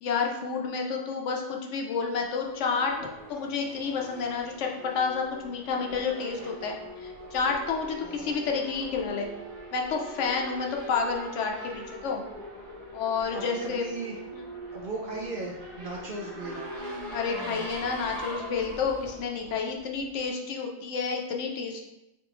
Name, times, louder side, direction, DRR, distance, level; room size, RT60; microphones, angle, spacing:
voice 1, 0.0-2.9 3.3-9.3 9.7-12.2 12.9-13.8 14.3-14.4 17.1-21.9, left 5 dB, 75° left, 1 dB, 0.9 m, -30 dB
Race car auto racing / Accelerating revving vroom, 2.1-20.2, equal, 35° right, 1.0 m, -42 dB
voice 2, 8.0-8.5 13.3-14.2 14.7-16.6, right 2 dB, 60° right, -2 dB, 0.6 m, -37 dB
3.7 x 3.2 x 3.0 m, 0.92 s
omnidirectional pair, 1.3 m